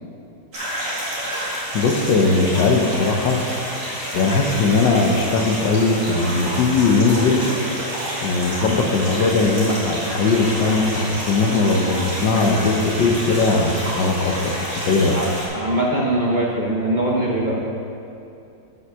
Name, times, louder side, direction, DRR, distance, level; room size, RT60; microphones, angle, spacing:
sound 1, 0.5-15.5, equal, 50° right, 2.8 m, -29 dB
voice 1, 1.7-3.4 4.1-7.4 8.2-14.6 14.9-15.2, left 3 dB, 75° left, 2 dB, 1.5 m, -19 dB
voice 2, 15.5-17.6, right 1 dB, 70° right, -4 dB, 0.4 m, -21 dB
8.0 x 5.9 x 6.1 m, 2.7 s
omnidirectional pair, 2.0 m